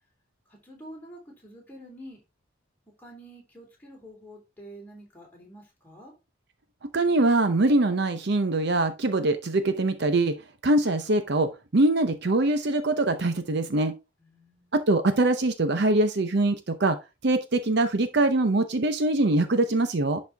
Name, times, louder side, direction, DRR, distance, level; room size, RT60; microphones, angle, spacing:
voice 1, 0.5-2.2 3.0-6.1 14.2-14.7, equal, 10° left, 3.3 m, -47 dB
voice 2, 6.8-10.4 10.6-14.0 14.7-17.0 17.2-20.2, right 2 dB, 55° right, 0.7 m, -23 dB
11.0 x 4.3 x 3.4 m
head